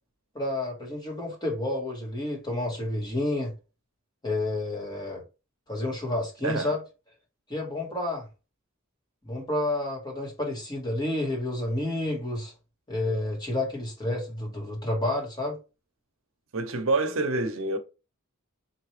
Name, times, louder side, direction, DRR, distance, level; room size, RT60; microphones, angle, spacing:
voice 1, 0.3-3.5 4.2-5.2 5.7-6.8 7.5-8.2 9.2-12.5 12.9-15.6, left 1 dB, 20° left, 1.5 m, -30 dB
voice 2, 16.5-17.8, right 2 dB, 70° right, 0.8 m, -27 dB
4.3 x 2.9 x 3.2 m
head